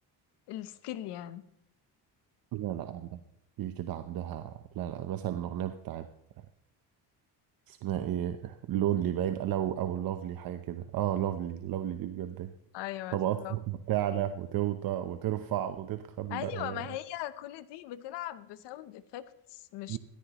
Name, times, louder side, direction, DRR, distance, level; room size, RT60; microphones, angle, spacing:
voice 1, 0.5-1.4 12.7-13.6 16.3-20.0, left 13 dB, 85° left, 14 dB, 1.0 m, -39 dB
voice 2, 2.5-3.2 3.6-6.1 7.7-12.5 13.1-16.8 19.9-20.0, right 11 dB, 60° right, 9 dB, 0.9 m, -33 dB
18.0 x 14.0 x 3.0 m, 0.78 s
cardioid pair, 125°, 40 cm